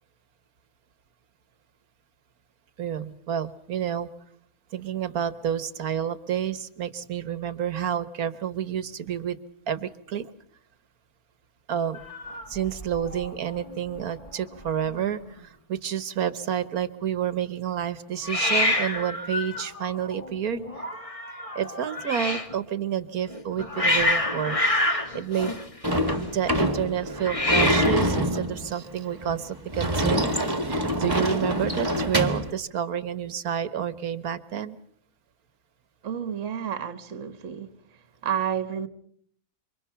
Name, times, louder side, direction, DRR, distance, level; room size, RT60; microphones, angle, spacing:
voice 1, 2.8-4.1 4.7-9.4 9.7-10.3 11.7-12.0 12.5-20.7 21.6-25.6 26.3-30.3 30.7-34.8, right 9 dB, 70° right, 1.7 m, -29 dB
Hiss, 11.9-13.3 13.6-14.0 14.3-14.4 14.6-15.2 18.2-22.5 23.3-26.2 27.2-28.1, left 2 dB, 20° left, 1.9 m, -28 dB
Sliding door / Slam, 25.8-32.5, equal, 15° right, 2.0 m, -26 dB
voice 2, 36.0-37.8 38.2-38.9, right 8 dB, 55° right, 1.6 m, -30 dB
28.0 x 25.0 x 5.8 m
omnidirectional pair, 1.6 m